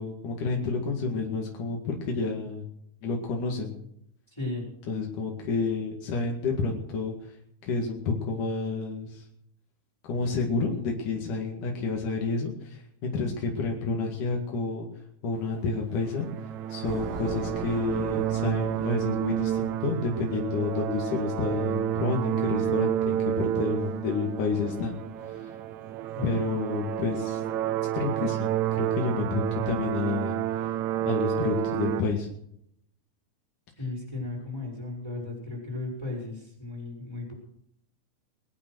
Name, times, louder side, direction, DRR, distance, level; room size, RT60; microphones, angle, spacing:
voice 1, 0.0-2.6 3.0-3.8 4.9-7.3 7.6-9.2 10.0-14.9 15.2-16.3 16.7-25.0 25.4-25.5 26.2-27.4 27.9-32.3, left 4 dB, 80° left, 0 dB, 3.7 m, -30 dB
voice 2, 4.3-4.7 26.1-26.3 33.8-37.3, left 2 dB, 10° left, -3 dB, 6.4 m, -35 dB
sound 1, 15.4-32.0, right 11 dB, 70° right, 2.0 m, -30 dB
sound 2, 16.8-20.6, right 3 dB, 50° right, 3.8 m, -39 dB
23.5 x 9.4 x 6.4 m, 0.73 s
omnidirectional pair, 3.6 m